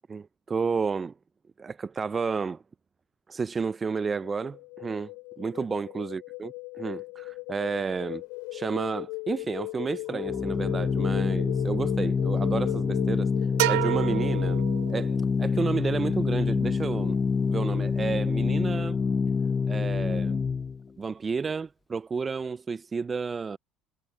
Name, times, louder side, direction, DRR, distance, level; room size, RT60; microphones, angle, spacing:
voice 1, 0.1-1.1 1.6-2.6 3.3-8.2 8.5-13.3 13.7-14.6 14.9-17.2 17.5-19.0 19.7-20.4 21.0-23.6, right 5 dB, 30° right, 0.4 m, -31 dB
sound 1, 3.9-13.8, left 30 dB, 80° left, 5.4 m, -38 dB
Organ, 10.1-20.8, left 5 dB, 30° left, 1.0 m, -26 dB
sound 2, 13.6-15.3, right 19 dB, 85° right, 0.8 m, -29 dB
supercardioid pair, 85°, 0 cm